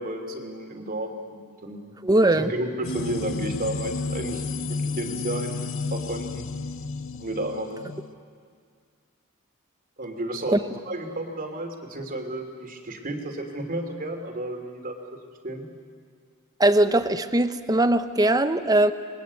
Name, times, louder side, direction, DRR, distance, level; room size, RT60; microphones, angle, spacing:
voice 1, 0.0-1.9 2.3-4.4 4.7-6.4 7.1-7.8 10.0-10.6 10.8-15.0 15.4-15.7, right 1 dB, 40° right, 4 dB, 3.0 m, -32 dB
voice 2, 2.0-2.5 10.5-10.6 16.6-18.9, right 1 dB, 20° right, 10 dB, 0.9 m, -20 dB
sound 1, 2.8-8.1, left 4 dB, 65° left, 0.9 m, -32 dB
28.5 x 21.5 x 8.4 m, 2.1 s
head